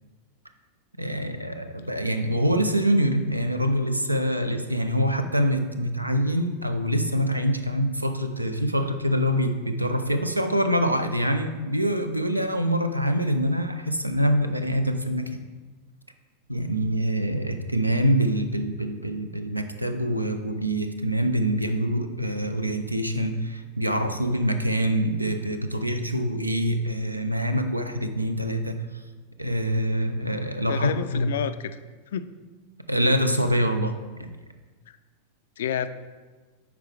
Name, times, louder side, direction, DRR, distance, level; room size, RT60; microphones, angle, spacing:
voice 1, 1.0-15.3 16.5-28.8 29.4-31.3 32.9-33.9 34.2-34.3, equal, 85° right, 8 dB, 0.5 m, -25 dB
voice 2, 30.7-31.5 32.1-32.3 35.6-35.9, left 9 dB, 60° left, 13 dB, 0.3 m, -28 dB
8.0 x 4.9 x 3.3 m, 1.3 s
figure-of-eight pair, 90°, 0 cm